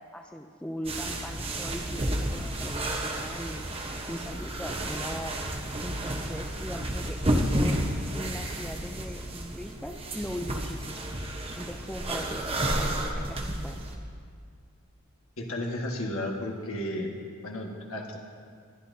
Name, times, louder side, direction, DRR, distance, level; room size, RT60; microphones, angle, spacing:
voice 1, 0.0-5.4 5.8-7.8 8.1-11.0 11.5-13.8, equal, 5° left, 4 dB, 0.4 m, -40 dB
sound 1, 0.8-14.0, right 1 dB, 25° right, 1.0 m, -31 dB
voice 2, 15.4-17.1 17.4-18.2, left 1 dB, 65° left, 0 dB, 1.7 m, -33 dB
20.0 x 12.0 x 2.8 m, 2.1 s
head